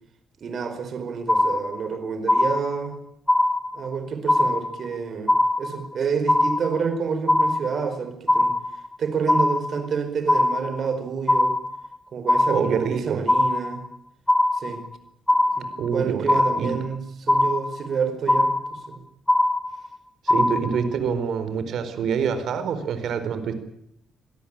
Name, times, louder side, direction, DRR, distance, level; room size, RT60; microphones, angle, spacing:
voice 1, 0.4-3.0 3.7-8.5 9.0-11.6 12.1-13.8 14.5-14.8 15.6-19.0 20.4-20.5, right 6 dB, 55° right, 10 dB, 4.8 m, -29 dB
sound 1, 1.3-1.9 2.3-2.9 3.3-3.9 4.3-4.9 5.3-5.9 6.3-6.9 7.3-7.9 8.3-8.9 9.3-9.9 10.3-10.9 11.3-11.9 12.3-12.9 13.3-13.9 14.3-14.9 15.3-15.9 16.3-16.9 17.3-17.9 18.3-18.9 19.3-19.9 20.3-20.9, left 1 dB, 10° left, 1.4 m, -21 dB
voice 2, 12.5-13.2 15.8-16.7 20.2-23.6, right 6 dB, 70° right, 10 dB, 4.4 m, -26 dB
25.0 x 18.5 x 9.0 m, 0.71 s
cardioid pair, 120°, 0 cm